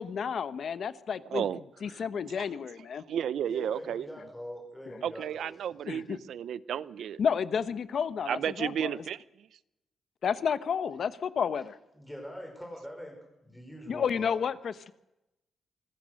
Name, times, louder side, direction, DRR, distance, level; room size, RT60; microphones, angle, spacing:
voice 1, 0.0-1.4 1.8-3.0 5.9-6.0 7.2-8.7 10.2-11.7 13.9-14.9, left 7 dB, 50° left, 14 dB, 1.0 m, -31 dB
voice 2, 1.2-2.0 2.4-2.5 2.8-4.1 5.0-7.2 8.3-9.5, right 9 dB, 70° right, 18 dB, 0.7 m, -33 dB
voice 3, 3.5-5.5 11.6-11.7 11.9-13.1 13.4-14.4, equal, ahead, 1 dB, 5.0 m, -43 dB
25.5 x 20.5 x 6.5 m, 0.92 s
wide cardioid pair, 165°, 0 cm